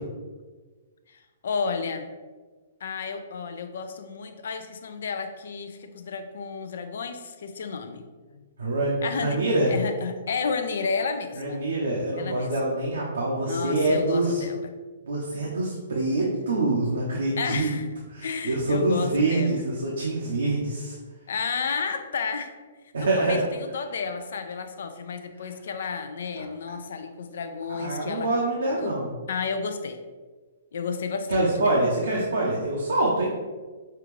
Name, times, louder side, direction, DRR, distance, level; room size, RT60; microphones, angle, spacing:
voice 1, 1.1-2.1 2.8-8.0 8.3-8.5 9.0-9.4 9.7-11.6 12.2-12.7 13.5-14.7 17.4-17.9 18.2-19.6 21.3-22.5 23.0-28.3 28.7-28.9 29.3-30.0 30.7-31.7, left 5 dB, 70° left, 8 dB, 0.4 m, -32 dB
voice 2, 8.6-9.7 11.4-14.4 15.0-17.7 18.1-21.0 22.9-23.4 27.7-29.1 31.3-33.3, right 2 dB, 90° right, -4 dB, 0.8 m, -25 dB
5.5 x 2.5 x 3.2 m, 1.4 s
hypercardioid pair, 140°, 0 cm